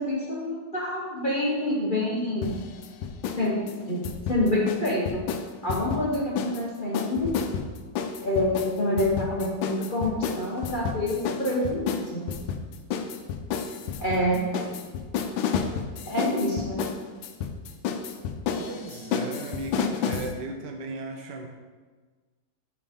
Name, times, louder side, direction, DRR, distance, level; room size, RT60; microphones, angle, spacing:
voice 1, 0.0-2.6 3.4-4.0 4.3-5.3 5.6-7.3 8.2-12.3 14.0-14.9 16.0-16.9, left 1 dB, 35° left, -6 dB, 1.0 m, -27 dB
sound 1, 2.4-3.4 3.7-6.6 6.9-20.3, left 7 dB, 85° left, 1.4 m, -31 dB
voice 2, 18.6-21.5, right 3 dB, 70° right, 4 dB, 1.2 m, -36 dB
5.8 x 4.8 x 5.2 m, 1.4 s
omnidirectional pair, 2.1 m